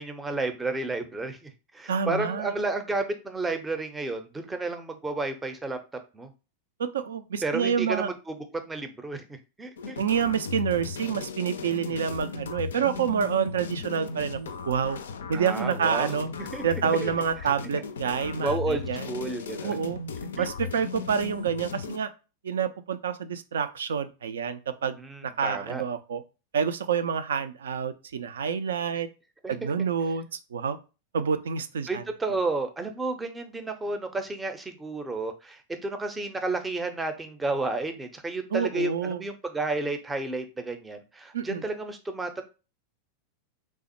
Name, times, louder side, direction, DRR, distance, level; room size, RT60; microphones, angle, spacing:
voice 1, 0.0-5.8 6.1-6.3 7.4-8.3 8.7-10.0 15.3-16.6 17.0-17.1 18.4-19.7 20.4-20.5 25.0-25.8 29.4-29.7 31.9-42.4, right 3 dB, 10° right, 6 dB, 0.5 m, -32 dB
voice 2, 1.9-2.5 6.8-8.1 10.0-14.4 14.7-15.0 15.3-16.3 16.6-19.1 19.6-20.0 20.4-22.1 22.4-26.2 26.5-29.1 29.5-30.8 31.1-32.0 38.5-39.2 41.3-41.6, right 7 dB, 65° right, 11 dB, 0.3 m, -28 dB
sound 1, 9.8-22.0, left 5 dB, 65° left, 0.3 m, -36 dB
3.2 x 2.0 x 2.9 m, 0.32 s
figure-of-eight pair, 90°, 0 cm